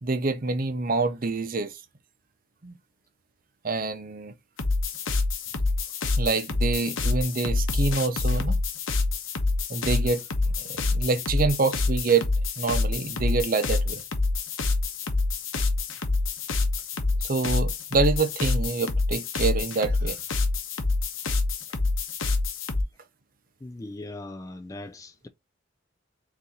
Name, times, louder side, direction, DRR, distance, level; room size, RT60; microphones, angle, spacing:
voice 1, 0.0-1.7 2.6-2.7 3.6-4.3 6.2-8.6 9.7-10.2 10.7-12.3 12.6-14.0 17.2-20.2, right 3 dB, 45° right, 0.7 m, -26 dB
sound 1, 4.6-22.8, left 3 dB, 90° left, 1.0 m, -26 dB
voice 2, 23.6-25.3, left 2 dB, 15° left, 0.4 m, -39 dB
4.0 x 4.0 x 2.8 m
head